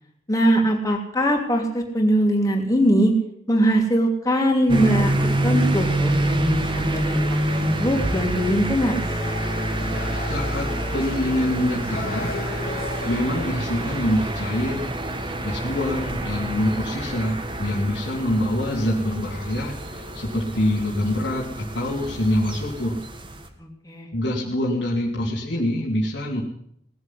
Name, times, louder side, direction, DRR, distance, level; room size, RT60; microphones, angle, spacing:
voice 1, 0.3-3.1 3.5-7.2 7.6-9.1 23.6-24.1, equal, 20° left, 1 dB, 2.8 m, -21 dB
sound 1, 4.7-23.5, right 1 dB, 30° right, 1.7 m, -27 dB
sound 2, 5.4-14.9, left 2 dB, 55° left, 2.7 m, -37 dB
voice 2, 10.3-12.4 13.0-14.9 15.4-23.0 24.1-26.4, left 1 dB, 85° left, -5 dB, 2.6 m, -25 dB
18.5 x 7.7 x 9.9 m, 0.73 s
head